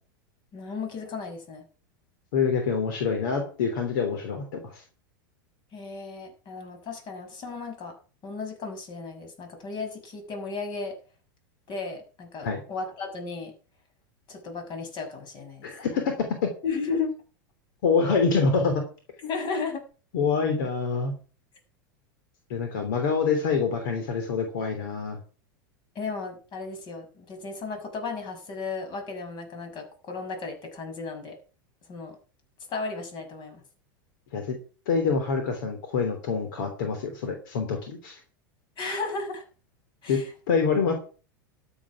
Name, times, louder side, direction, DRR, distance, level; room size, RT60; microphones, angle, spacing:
voice 1, 0.5-1.6 5.7-7.9 8.2-11.0 11.7-13.5 14.3-15.7 16.6-17.2 19.3-19.8 25.9-31.4 31.9-32.2 32.7-33.6 38.8-39.4 40.0-40.3, left 4 dB, 45° left, 5 dB, 6.3 m, -34 dB
voice 2, 2.3-4.8 12.4-12.6 15.6-16.5 17.8-18.8 20.1-21.1 22.5-25.2 34.3-34.6 34.9-38.2 40.1-40.2 40.5-40.9, left 5 dB, 70° left, 5 dB, 3.2 m, -26 dB
13.0 x 8.0 x 6.0 m, 0.37 s
hypercardioid pair, 100°, 11 cm